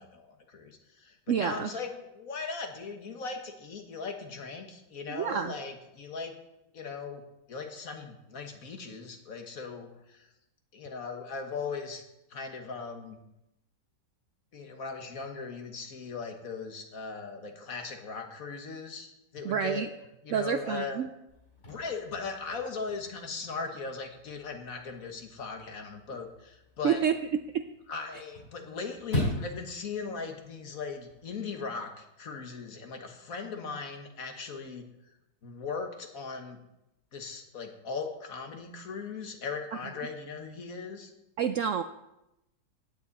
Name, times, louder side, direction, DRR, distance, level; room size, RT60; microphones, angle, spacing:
voice 1, 0.0-6.4 6.7-7.2 7.5-10.3 10.7-12.0 12.3-13.2 14.5-19.9 20.2-21.0 21.7-27.1 27.9-34.9 35.4-36.6 37.1-41.1, left 4 dB, 60° left, 5 dB, 1.8 m, -39 dB
voice 2, 1.3-1.7 5.1-5.5 19.4-19.9 20.3-21.1 26.8-27.2 27.5-27.6 41.4-41.8, right 8 dB, 65° right, 9 dB, 0.8 m, -28 dB
Chirp tweet / Car / Slam, 21.3-31.3, left 1 dB, 40° left, 5.8 m, -40 dB
16.0 x 9.8 x 4.2 m, 0.89 s
omnidirectional pair, 1.7 m